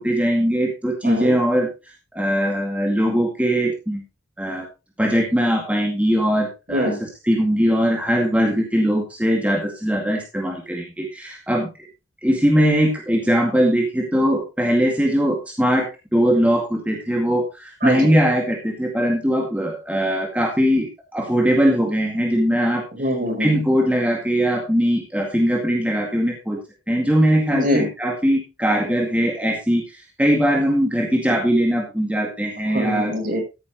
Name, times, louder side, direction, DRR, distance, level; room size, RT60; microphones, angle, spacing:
voice 1, 0.0-1.7 2.1-4.0 4.4-4.7 5.0-6.9 7.3-11.7 12.2-22.8 23.4-26.6 26.9-33.1, equal, 5° right, 0 dB, 2.1 m, -20 dB
voice 2, 1.0-1.4 6.7-7.0 17.8-18.1 22.9-23.5 27.5-27.9 32.7-33.4, equal, 45° right, 4 dB, 5.0 m, -23 dB
14.0 x 9.3 x 3.0 m, 0.27 s
head